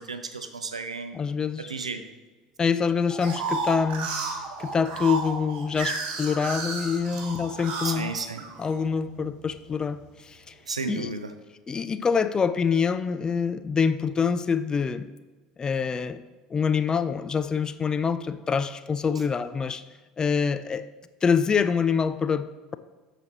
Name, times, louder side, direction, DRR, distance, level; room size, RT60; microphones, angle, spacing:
voice 1, 0.0-1.2 1.6-2.0 7.8-8.5 10.7-11.3, right 4 dB, 80° right, 9 dB, 0.6 m, -33 dB
voice 2, 1.1-1.7 2.6-4.1 4.6-8.1 8.6-10.0 10.3-10.4 10.9-11.1 11.7-15.1 15.6-16.2 16.5-19.8 20.2-20.9 21.2-22.8, left 6 dB, 20° left, 12 dB, 0.4 m, -25 dB
sound 1, 3.1-8.8 9.4-10.1, right 4 dB, 45° right, 1.5 m, -32 dB
13.5 x 5.0 x 3.0 m, 1.3 s
figure-of-eight pair, 70°, 3 cm